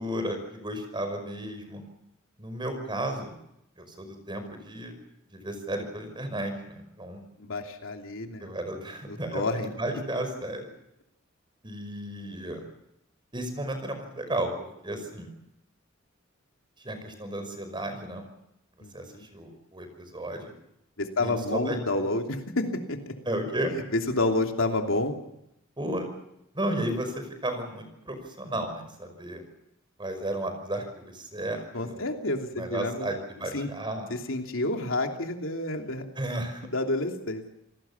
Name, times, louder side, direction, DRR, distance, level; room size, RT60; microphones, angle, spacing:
voice 1, 0.0-1.8 2.4-3.4 3.8-4.9 5.3-7.2 8.4-10.7 11.6-12.6 13.3-15.3 16.8-18.3 18.9-20.5 21.2-21.8 23.3-23.7 25.8-26.1 26.5-29.4 30.0-32.1 32.5-34.1 36.2-36.7, right 1 dB, 25° right, 7 dB, 5.4 m, -33 dB
voice 2, 7.4-8.5 9.1-9.7 18.8-19.3 21.0-23.1 23.9-25.1 31.7-33.1 33.5-33.7 34.1-36.1 36.7-37.4, left 2 dB, 85° left, 3 dB, 3.0 m, -29 dB
28.5 x 19.0 x 7.2 m, 0.83 s
head